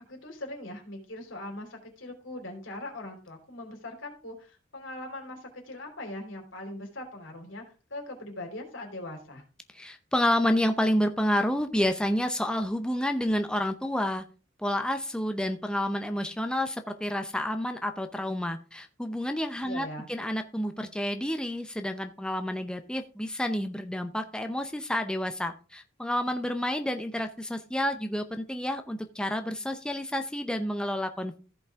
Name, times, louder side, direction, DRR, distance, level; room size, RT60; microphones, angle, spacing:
voice 1, 0.1-7.6 7.9-9.4 19.6-20.1, left 1 dB, 85° left, 2 dB, 3.3 m, -40 dB
voice 2, 9.7-14.2 14.6-31.4, left 1 dB, 5° left, 6 dB, 0.6 m, -29 dB
14.5 x 5.4 x 3.6 m, 0.34 s
head